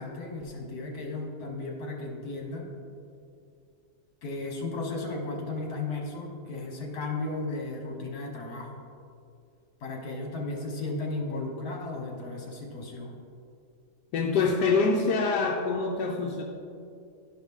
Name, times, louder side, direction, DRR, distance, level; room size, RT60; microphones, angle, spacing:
voice 1, 0.0-2.7 4.2-8.8 9.8-13.2, left 2 dB, 65° left, 0 dB, 1.8 m, -35 dB
voice 2, 14.1-16.4, left 4 dB, 85° left, 1 dB, 1.2 m, -25 dB
11.5 x 5.1 x 3.6 m, 2.4 s
omnidirectional pair, 1.8 m